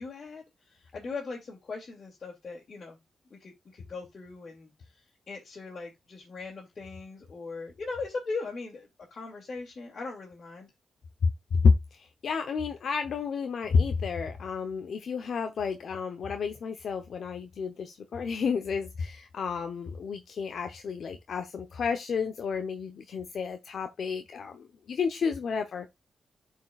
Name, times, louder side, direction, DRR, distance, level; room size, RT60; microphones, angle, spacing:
voice 1, 0.0-3.0 3.3-10.7, left 3 dB, 55° left, 2.2 m, -40 dB
voice 2, 11.6-25.9, left 5 dB, 70° left, 0.8 m, -30 dB
11.5 x 4.7 x 2.4 m
cardioid pair, 55°, 0 cm